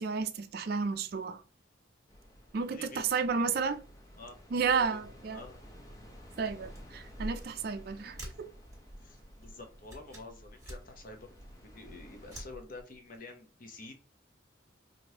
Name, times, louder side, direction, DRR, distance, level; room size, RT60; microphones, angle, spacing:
voice 1, 0.0-1.4 2.5-3.8 4.5-5.4 6.4-8.5, right 5 dB, 50° right, 0.4 m, -32 dB
sound 1, 2.1-12.4, equal, 15° left, 0.7 m, -54 dB
voice 2, 2.7-3.1 4.2-4.4 4.6-5.0 5.3-5.6 6.6-6.7 9.0-11.3 11.6-13.9, left 3 dB, 45° left, 0.8 m, -48 dB
sound 2, 6.5-13.2, right 1 dB, 15° right, 1.4 m, -48 dB
4.8 x 2.6 x 2.8 m
head